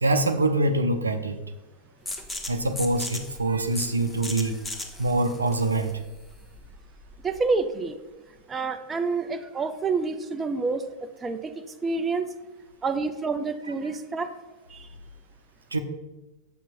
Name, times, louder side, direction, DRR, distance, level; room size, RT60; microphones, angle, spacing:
voice 1, 0.0-1.4 2.5-4.6 5.0-6.0 15.7-15.8, right 2 dB, 80° right, 7 dB, 0.7 m, -24 dB
sound 1, 2.1-7.5, left 2 dB, 10° left, 1.1 m, -38 dB
voice 2, 7.2-8.0 8.5-10.8 11.2-12.3 12.8-14.3 14.7-14.9, right 4 dB, 15° right, 8 dB, 0.6 m, -28 dB
8.0 x 6.1 x 4.4 m, 1.1 s
figure-of-eight pair, 90°, 0 cm